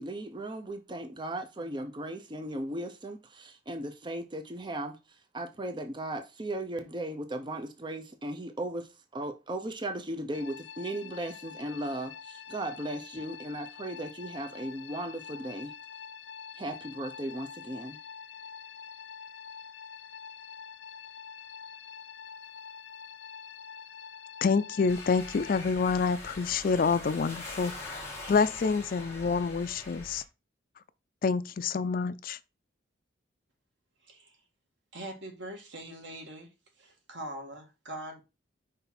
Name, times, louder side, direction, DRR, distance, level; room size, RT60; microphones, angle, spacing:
voice 1, 0.0-5.0 5.3-15.7 16.6-18.0, right 1 dB, 25° right, 0.7 m, -37 dB
sound 1, 10.3-25.6, left 7 dB, 85° left, 1.0 m, -46 dB
voice 2, 24.4-30.2 31.2-32.4, left 5 dB, 50° left, 0.4 m, -27 dB
sound 2, 24.9-30.2, left 2 dB, 15° left, 1.7 m, -43 dB
voice 3, 34.0-34.4 34.9-36.5 36.8-38.2, right 1 dB, 75° right, 1.9 m, -42 dB
5.6 x 3.4 x 5.8 m
head